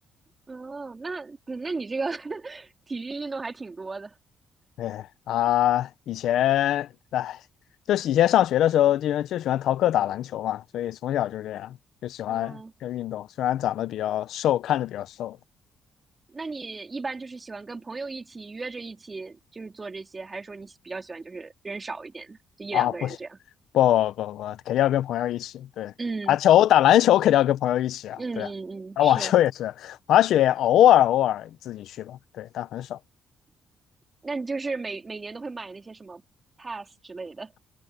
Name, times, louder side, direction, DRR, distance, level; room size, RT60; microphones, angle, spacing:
voice 1, 0.5-4.1 12.3-12.7 16.3-23.4 26.0-26.4 28.2-29.3 34.2-36.2 36.6-37.5, right 3 dB, 25° right, 3.5 m, -35 dB
voice 2, 4.8-7.4 7.9-11.8 12.0-15.4 22.7-23.1 23.7-25.9 26.3-28.5 29.0-33.0, left 12 dB, 80° left, 0.7 m, -23 dB
cardioid pair, 90°, 0 cm